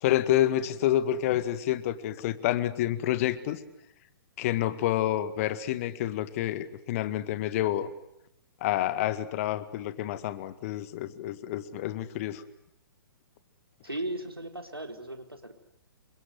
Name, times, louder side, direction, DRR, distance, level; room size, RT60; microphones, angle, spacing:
voice 1, 0.0-3.6 4.4-7.9 8.6-12.4, left 13 dB, 35° left, 13 dB, 1.9 m, -28 dB
voice 2, 13.8-15.6, right 1 dB, 85° right, 6 dB, 4.1 m, -37 dB
28.5 x 25.0 x 8.0 m, 0.84 s
figure-of-eight pair, 120°, 12 cm